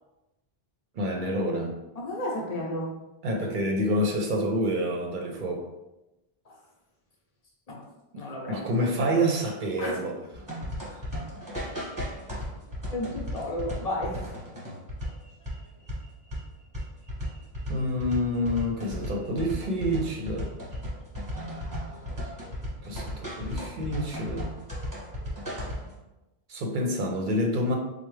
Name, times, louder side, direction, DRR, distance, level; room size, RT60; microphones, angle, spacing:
voice 1, 1.0-1.8 3.2-5.6 8.5-10.1 10.8-10.9 17.7-20.5 22.8-24.5 26.5-27.8, equal, 60° right, 1 dB, 0.7 m, -28 dB
voice 2, 1.9-2.9 6.4-6.6 7.7-7.8 8.2-9.0 9.8-10.0 12.9-14.3, left 1 dB, 40° left, -1 dB, 0.8 m, -33 dB
sound 1, 10.3-25.9, equal, 20° right, 1.0 m, -35 dB
4.5 x 2.1 x 3.1 m, 0.98 s
omnidirectional pair, 1.0 m